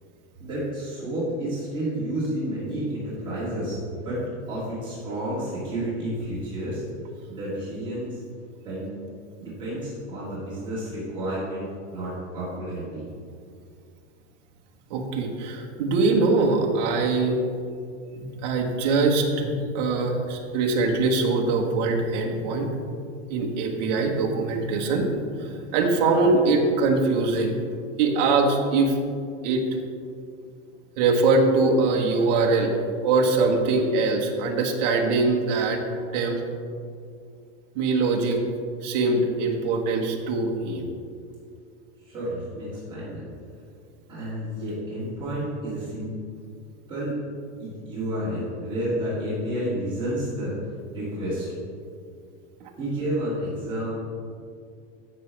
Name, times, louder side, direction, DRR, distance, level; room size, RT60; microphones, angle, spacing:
voice 1, 0.4-3.8 4.0-6.8 7.3-8.2 8.6-9.0 9.4-13.0 42.0-43.2 44.1-46.1 46.9-47.1 47.6-50.5 50.9-51.5 52.8-53.9, right 1 dB, 15° right, -10 dB, 2.3 m, -30 dB
voice 2, 14.9-17.4 18.1-22.8 23.3-27.5 28.0-29.0 29.4-29.6 31.0-32.7 33.0-35.8 36.1-36.4 37.7-38.4 38.8-40.8, right 3 dB, 35° right, 1 dB, 1.1 m, -23 dB
14.5 x 6.1 x 3.2 m, 2.3 s
supercardioid pair, 175°, 36 cm